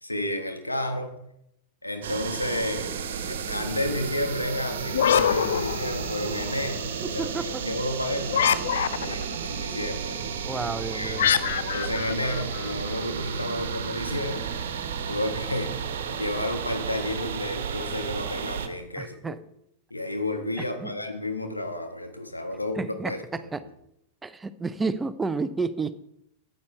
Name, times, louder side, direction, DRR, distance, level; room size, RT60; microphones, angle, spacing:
voice 1, 0.0-1.1 1.8-2.9 3.3-10.2 10.5-10.6 10.9-11.4 11.7-14.5 14.8-19.4 19.9-23.5, left 1 dB, 85° left, 5 dB, 1.4 m, -31 dB
sound 1, 2.0-18.7, right 7 dB, 60° right, 1.1 m, -33 dB
sound 2, 4.9-6.4 8.3-9.4 11.2-13.0, left 8 dB, 65° left, 0.5 m, -25 dB
voice 2, 10.4-11.3 19.0-19.4 20.6-20.9 22.8-23.6 24.2-26.0, right 4 dB, 10° right, 14 dB, 0.5 m, -31 dB
9.6 x 9.0 x 4.4 m, 0.77 s
figure-of-eight pair, 90°, 0 cm